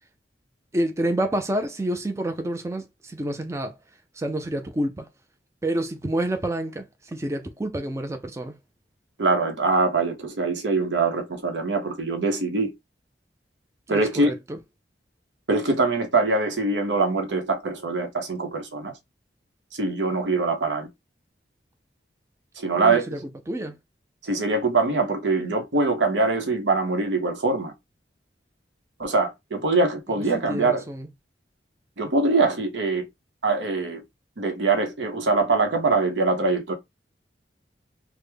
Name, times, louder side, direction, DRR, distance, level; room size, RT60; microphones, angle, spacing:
voice 1, 0.7-3.8 4.1-5.1 5.6-8.6 13.9-14.6 22.8-23.2 23.5-23.8 30.5-31.1, right 1 dB, 15° right, 0.3 m, -28 dB
voice 2, 9.2-12.7 13.9-14.3 15.5-19.0 19.7-20.9 22.6-23.1 24.2-27.7 29.0-30.8 32.0-33.1 33.4-34.0 34.4-36.7, right 3 dB, 85° right, 0.8 m, -23 dB
3.3 x 2.0 x 3.3 m
head